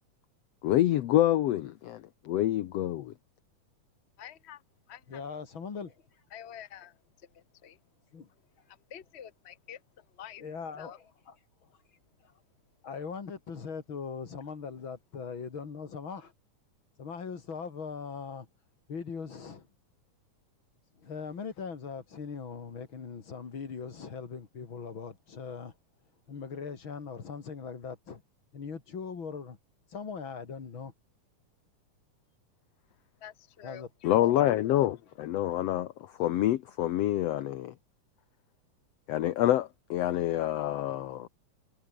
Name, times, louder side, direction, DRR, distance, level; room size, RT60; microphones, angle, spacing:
voice 1, 0.6-3.1 34.0-37.7 39.1-41.3, left 13 dB, 65° left, 1.8 m, -27 dB
voice 2, 4.2-4.6 4.9-5.2 6.3-7.8 8.9-10.4 10.8-11.0 33.2-34.1, left 10 dB, 90° left, 0.5 m, -48 dB
voice 3, 5.1-6.2 8.1-8.3 10.4-11.4 11.6-11.8 12.2-12.3 12.8-16.3 17.0-18.5 18.9-19.7 20.9-25.8 26.3-28.2 28.5-29.6 29.9-30.9 33.6-34.6, left 5 dB, 40° left, 3.3 m, -40 dB
omnidirectional pair, 3.6 m